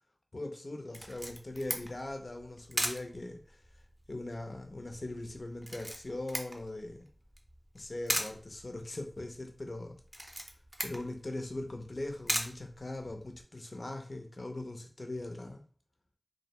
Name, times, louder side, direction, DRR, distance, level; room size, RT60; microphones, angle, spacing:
voice 1, 0.3-3.6 4.1-7.1 7.7-10.0 10.8-15.6, left 2 dB, 70° left, 4 dB, 0.4 m, -40 dB
Camera, 0.9-13.4, equal, 20° right, 0.5 m, -40 dB
2.5 x 2.0 x 2.8 m, 0.42 s
wide cardioid pair, 45°, 0 cm